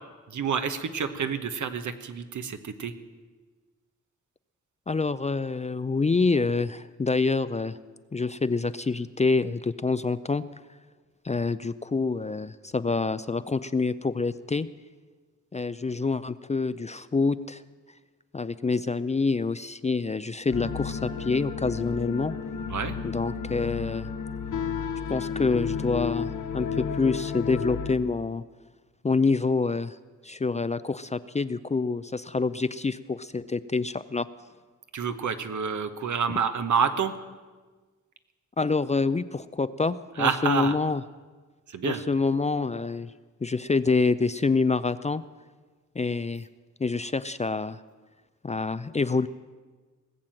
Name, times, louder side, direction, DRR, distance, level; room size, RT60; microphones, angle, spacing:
voice 1, 0.3-2.9 22.7-22.9 34.9-37.1 40.2-40.8 41.7-42.0, right 6 dB, 65° right, 9 dB, 1.1 m, -28 dB
voice 2, 4.9-7.8 8.1-10.4 11.2-14.7 15.5-17.6 18.3-22.3 23.0-24.1 25.1-28.4 29.0-30.0 30.2-34.3 38.6-41.0 41.8-43.1 43.4-45.2 46.0-46.5 46.8-47.8 48.4-49.3, left 4 dB, 20° left, 14 dB, 0.4 m, -27 dB
sound 1, 20.5-28.0, left 6 dB, 70° left, 1.1 m, -32 dB
19.0 x 7.4 x 7.6 m, 1.4 s
cardioid pair, 60°, 32 cm